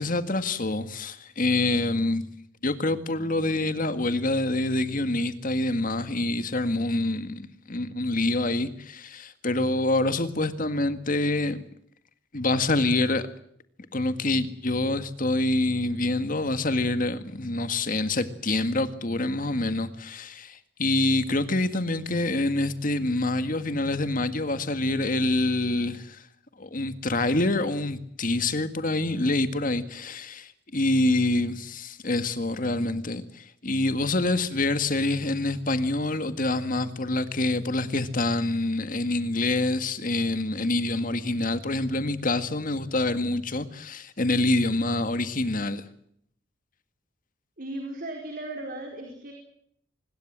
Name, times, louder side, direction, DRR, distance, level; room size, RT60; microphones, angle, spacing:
voice 1, 0.0-2.2 2.6-11.6 12.3-13.3 13.9-26.2 26.6-45.9, left 2 dB, 45° left, 1.9 m, -26 dB
voice 2, 47.6-49.3, right 1 dB, 50° right, 4.5 m, -36 dB
25.0 x 21.0 x 7.5 m
head